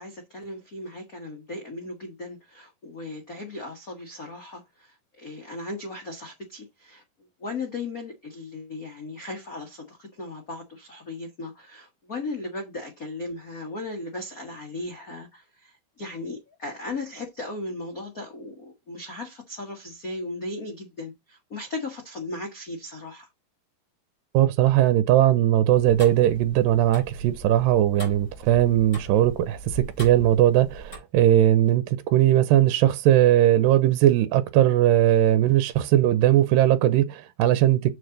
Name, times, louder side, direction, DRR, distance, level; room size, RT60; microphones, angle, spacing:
voice 1, 0.0-7.0 7.4-23.3, left 2 dB, 85° left, 0.7 m, -37 dB
voice 2, 24.3-31.8 32.1-37.9, right 12 dB, 80° right, 2.3 m, -19 dB
Tick-tock, 25.7-31.0, right 2 dB, 20° left, 3.7 m, -41 dB
7.0 x 6.4 x 3.9 m
omnidirectional pair, 4.1 m